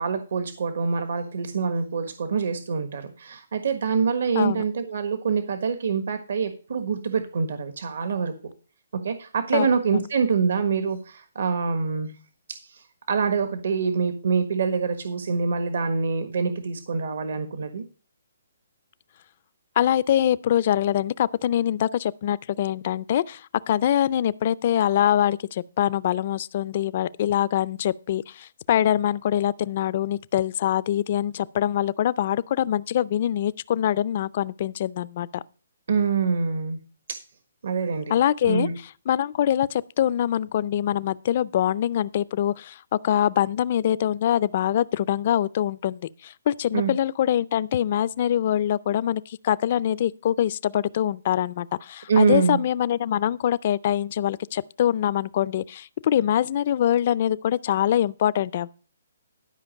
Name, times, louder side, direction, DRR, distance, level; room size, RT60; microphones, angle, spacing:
voice 1, 0.0-8.3 9.0-12.1 12.6-17.8 35.9-36.8 37.1-37.2 37.6-38.1 38.4-38.8 46.7-46.9 52.1-52.6, right 5 dB, 65° right, 1.4 m, -25 dB
voice 2, 19.8-35.4 38.1-38.7 39.1-58.7, left 11 dB, 40° left, 0.4 m, -24 dB
12.0 x 5.2 x 6.4 m
hypercardioid pair, 165°, 0 cm